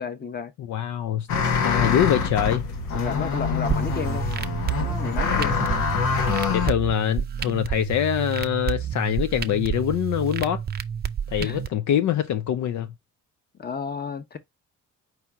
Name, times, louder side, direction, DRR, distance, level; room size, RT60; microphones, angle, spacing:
voice 1, 0.0-0.5 2.9-4.3 4.8-5.6 6.0-6.2 11.4-11.6 13.6-14.4, left 5 dB, 35° left, 1.0 m, -32 dB
voice 2, 0.6-2.6 5.3-5.7 6.5-10.6 11.3-12.9, left 10 dB, 70° left, 0.6 m, -24 dB
sound 1, 1.3-6.7, left 5 dB, 90° left, 1.1 m, -25 dB
sound 2, 3.7-11.7, right 8 dB, 35° right, 0.5 m, -29 dB
4.7 x 2.8 x 3.6 m
cardioid pair, 90°, 30 cm